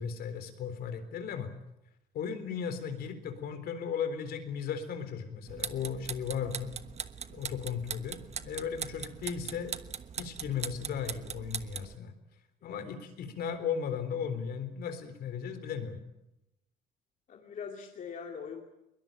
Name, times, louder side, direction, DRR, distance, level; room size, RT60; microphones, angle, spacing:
voice 1, 0.0-1.5 2.1-6.7 7.3-9.8 10.2-12.1 12.6-16.0, left 7 dB, 65° left, 9 dB, 3.8 m, -36 dB
sound 1, 5.5-12.0, right 7 dB, 40° right, 1.2 m, -40 dB
voice 2, 12.6-13.1 17.3-18.6, left 6 dB, 50° left, 2 dB, 2.6 m, -43 dB
22.0 x 21.0 x 9.0 m, 0.89 s
cardioid pair, 110°, 17 cm